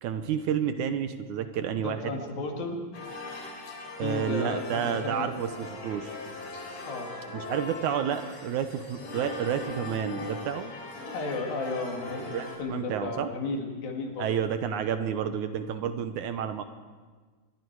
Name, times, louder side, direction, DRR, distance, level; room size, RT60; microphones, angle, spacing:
voice 1, 0.0-2.1 4.0-6.1 7.3-10.7 12.3-13.3 14.2-16.6, right 8 dB, 70° right, 9 dB, 2.1 m, -30 dB
voice 2, 1.7-2.8 4.0-5.3 6.9-7.1 11.1-14.3, left 3 dB, 85° left, 2 dB, 4.1 m, -34 dB
sound 1, 2.9-12.6, left 2 dB, 60° left, 4.7 m, -40 dB
25.5 x 21.5 x 4.7 m, 1.4 s
omnidirectional pair, 4.0 m